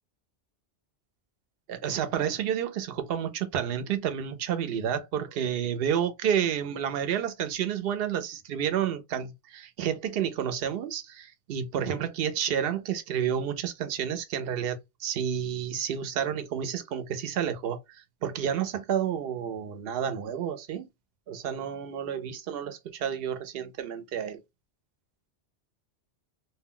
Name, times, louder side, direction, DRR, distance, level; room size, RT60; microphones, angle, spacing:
voice 1, 1.7-20.9 21.3-24.4, right 9 dB, 60° right, 0.7 m, -30 dB
2.3 x 2.2 x 3.6 m
omnidirectional pair, 1.2 m